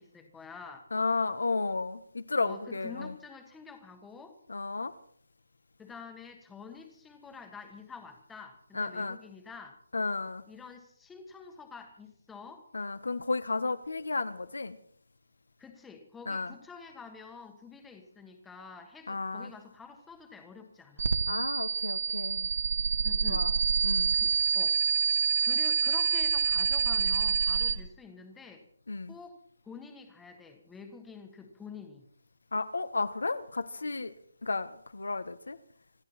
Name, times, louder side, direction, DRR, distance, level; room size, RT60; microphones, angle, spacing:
voice 1, 0.0-0.9 2.4-4.4 5.8-9.8 10.5-12.6 15.6-21.1 23.0-23.5 23.7-23.8 24.1-24.8 25.4-28.6 29.1-29.4 29.6-32.0, left 5 dB, 5° left, 1.4 m, -48 dB
voice 2, 0.9-3.1 4.5-4.9 8.7-9.2 9.9-10.4 12.7-14.8 16.3-16.5 19.1-19.5 21.3-22.5 23.3-23.5 23.8-24.1 28.9-29.1 32.5-34.1 34.4-35.6, left 3 dB, 85° left, 1.4 m, -33 dB
sound 1, 21.0-27.8, right 6 dB, 50° right, 1.7 m, -27 dB
26.5 x 12.0 x 4.4 m
hypercardioid pair, 175°, 0 cm